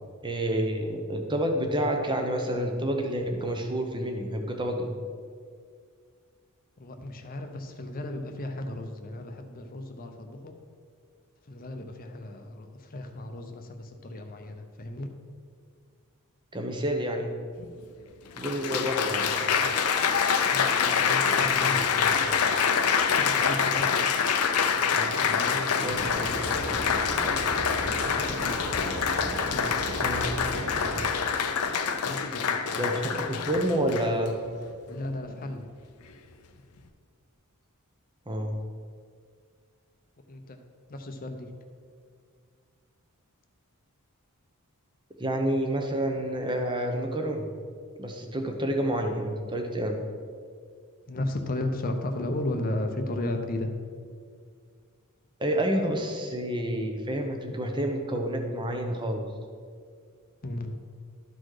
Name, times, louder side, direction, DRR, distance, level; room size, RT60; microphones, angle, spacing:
voice 1, 0.2-4.9 16.5-17.3 18.4-19.3 25.8-26.0 30.0-30.3 32.7-34.3 38.3-38.6 45.2-47.5 48.0-50.0 55.4-59.2, right 1 dB, 20° right, 4 dB, 0.8 m, -29 dB
voice 2, 6.8-10.6 11.4-15.1 20.5-22.4 23.1-24.0 24.7-27.4 27.9-28.7 29.4-30.0 30.2-31.1 32.0-32.8 34.9-35.6 40.3-40.6 40.9-41.5 51.1-53.7 60.4-60.7, left 1 dB, 40° left, 5 dB, 0.7 m, -35 dB
Applause, 17.6-17.7 18.4-34.3 35.0-35.3, left 6 dB, 80° left, 0.6 m, -26 dB
sound 1, 25.9-31.1, equal, 65° right, 1.2 m, -35 dB
12.0 x 4.1 x 4.8 m, 2.1 s
head